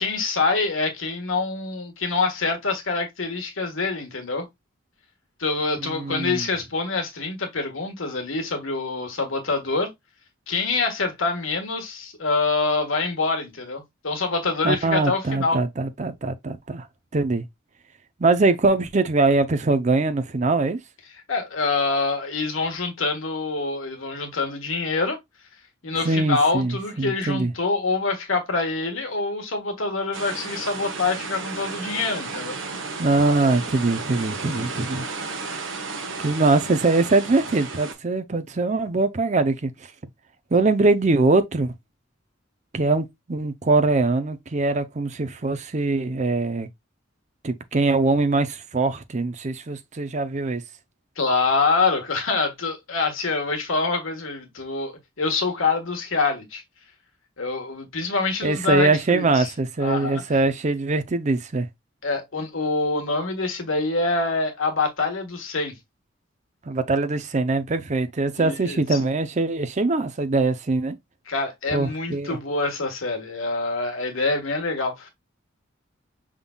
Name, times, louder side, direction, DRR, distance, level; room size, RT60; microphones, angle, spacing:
voice 1, 0.0-4.5 5.4-9.9 10.5-15.6 21.3-25.2 25.8-32.6 51.2-56.6 57.4-59.5 59.8-60.2 62.0-65.8 68.4-69.0 71.3-75.1, left 3 dB, 85° left, 1.5 m, -25 dB
voice 2, 5.8-6.4 14.6-16.9 17.1-17.4 18.2-20.8 26.0-27.5 33.0-35.1 36.2-39.7 40.5-41.7 42.7-46.7 47.4-50.6 58.4-61.7 66.7-71.0 71.7-72.4, right 3 dB, 35° right, 0.6 m, -22 dB
sound 1, 30.1-37.9, right 4 dB, 65° right, 1.1 m, -33 dB
5.5 x 3.6 x 2.2 m
head